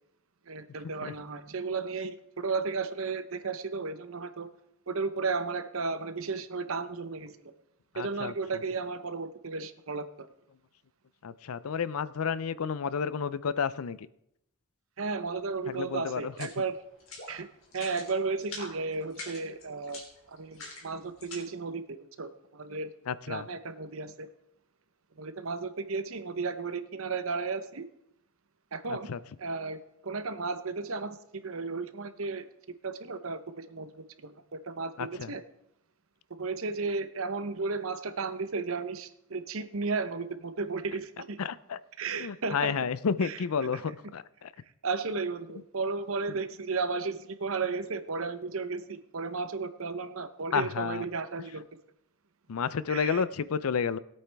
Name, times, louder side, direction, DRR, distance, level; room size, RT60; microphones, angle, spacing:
voice 1, 0.5-4.5 4.9-7.3 7.9-10.3 15.0-16.8 17.3-17.5 17.7-20.0 20.3-22.9 23.3-24.3 25.2-27.8 28.7-29.1 29.4-32.4 32.8-35.4 36.4-41.4 42.0-42.7 43.2-43.4 44.8-51.6 52.9-53.2, right 4 dB, 70° right, 11 dB, 0.8 m, -34 dB
voice 2, 7.9-8.3 11.2-14.1 15.7-16.5 23.1-23.5 28.9-29.2 35.0-35.3 41.4-41.8 42.2-44.5 46.3-46.4 50.5-51.0 52.5-54.0, left 6 dB, 85° left, 17 dB, 0.5 m, -31 dB
sound 1, 16.3-16.6 17.0-17.3 17.6-18.1 18.4-18.7 19.1-21.4, left 3 dB, 65° left, 3.2 m, -43 dB
20.0 x 8.7 x 3.4 m, 0.78 s
head